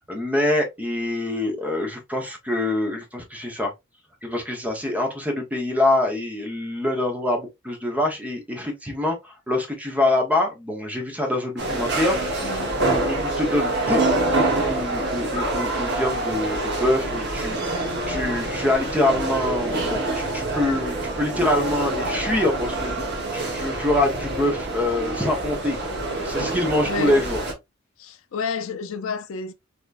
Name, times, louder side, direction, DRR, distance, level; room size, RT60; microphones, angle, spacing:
voice 1, 0.0-3.7 4.2-23.1 23.3-27.4, left 1 dB, 5° right, 0.8 m, -25 dB
sound 1, 11.6-27.5, right 2 dB, 55° right, 1.1 m, -26 dB
voice 2, 12.4-12.8 26.0-26.4 26.8-27.2 28.0-29.5, left 4 dB, 75° left, 0.4 m, -31 dB
3.4 x 2.9 x 2.4 m
head